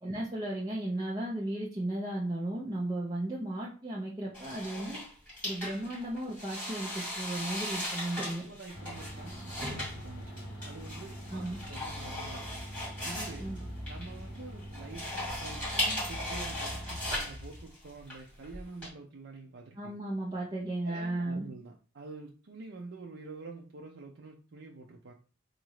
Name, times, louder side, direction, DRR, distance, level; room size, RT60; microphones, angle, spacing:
voice 1, 0.0-5.0 5.4-8.4 11.3-11.6 13.4-13.6 19.8-21.5, right 1 dB, 20° right, 0.7 m, -35 dB
sound 1, 4.3-18.9, left 1 dB, 10° left, 2.5 m, -38 dB
voice 2, 8.2-12.6 13.0-13.5 13.9-19.9 20.8-25.1, right 3 dB, 70° right, 0.6 m, -47 dB
sound 2, 8.7-17.7, equal, 50° left, 2.6 m, -43 dB
4.0 x 2.6 x 4.7 m
head